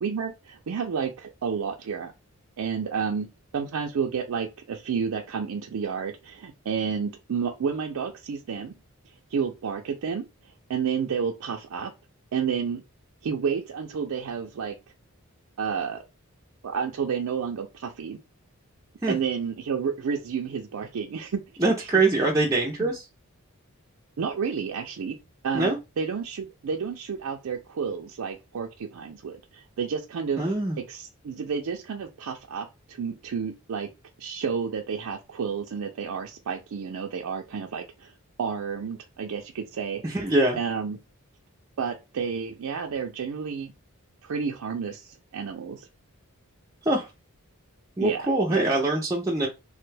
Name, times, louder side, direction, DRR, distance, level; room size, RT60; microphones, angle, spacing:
voice 1, 0.0-2.1 2.6-3.3 3.5-8.7 9.3-10.2 10.7-11.9 12.3-12.8 13.2-14.7 15.6-16.0 16.6-18.2 19.1-21.9 22.8-22.9 24.2-25.1 25.4-30.5 30.9-33.9 34.2-38.1 38.4-41.0 41.8-43.7 44.2-45.8 48.0-48.2 48.5-48.6, right 6 dB, 80° right, 0.4 m, -30 dB
voice 2, 21.6-23.0 25.5-25.8 30.4-30.8 40.0-40.6 46.9-47.1 48.0-49.5, right 2 dB, 15° right, 0.4 m, -23 dB
3.2 x 2.2 x 3.2 m
head